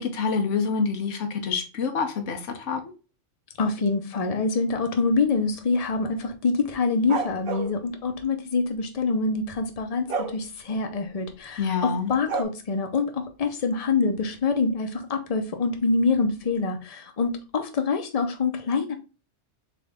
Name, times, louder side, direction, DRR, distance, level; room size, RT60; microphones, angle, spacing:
voice 1, 0.0-2.8 11.6-12.1, left 5 dB, 85° left, 4 dB, 1.2 m, -27 dB
voice 2, 3.6-19.0, left 4 dB, 35° left, 6 dB, 0.7 m, -25 dB
sound 1, 7.1-7.7 10.1-10.4 12.3-12.4, right 4 dB, 50° right, 1.2 m, -28 dB
3.9 x 3.8 x 3.4 m, 0.33 s
omnidirectional pair, 1.2 m